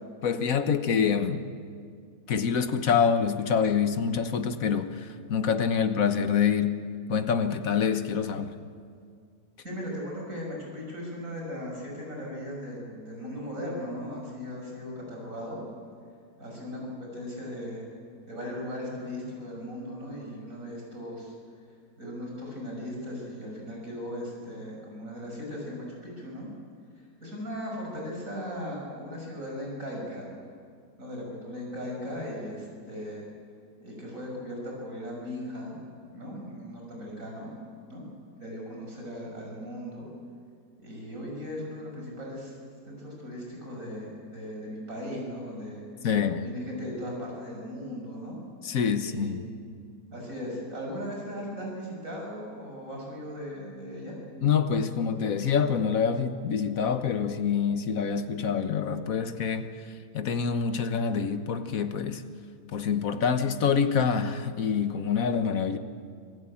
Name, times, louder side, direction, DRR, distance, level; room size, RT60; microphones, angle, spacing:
voice 1, 0.2-1.4 2.3-6.8 7.1-8.6 46.0-46.5 48.6-49.4 54.4-59.7 60.1-62.2 62.7-65.8, left 6 dB, 55° left, 9 dB, 1.5 m, -26 dB
voice 2, 9.6-15.6 16.4-17.9 18.3-21.3 22.0-26.5 27.2-30.3 31.0-33.2 33.8-35.8 36.1-37.5 37.9-38.0 38.4-40.1 40.8-42.5 42.9-45.8 46.4-48.4 49.0-49.4 50.1-54.2, equal, 50° right, -1 dB, 7.2 m, -38 dB
26.5 x 17.5 x 8.7 m, 2.2 s
omnidirectional pair, 1.9 m